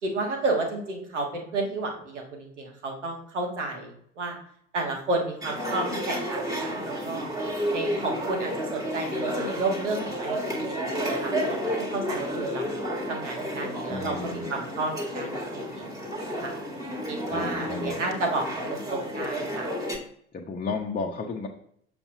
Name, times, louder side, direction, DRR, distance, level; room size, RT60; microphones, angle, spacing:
voice 1, 0.0-4.4 4.7-7.3 7.7-12.8 13.1-15.9 16.4-16.5 17.1-19.7, right 2 dB, 80° right, 2 dB, 1.6 m, -32 dB
sound 1, 5.4-20.0, equal, 10° right, 1.7 m, -31 dB
voice 2, 13.9-14.5 17.3-18.0 20.3-21.5, left 4 dB, 25° left, 0 dB, 0.9 m, -33 dB
7.1 x 6.8 x 2.7 m, 0.66 s
figure-of-eight pair, 65°, 35 cm